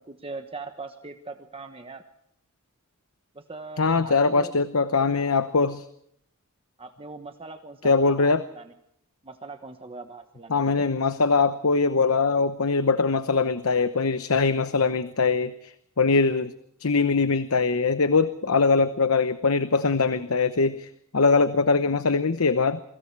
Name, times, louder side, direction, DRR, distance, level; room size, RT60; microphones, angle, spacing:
voice 1, 0.0-2.0 3.3-4.5 6.8-8.7 9.2-10.9, right 3 dB, 25° right, 7 dB, 1.2 m, -41 dB
voice 2, 3.8-5.9 7.8-8.4 10.5-16.5 16.8-22.8, left 4 dB, 70° left, 11 dB, 0.9 m, -22 dB
27.5 x 24.5 x 4.7 m, 0.70 s
head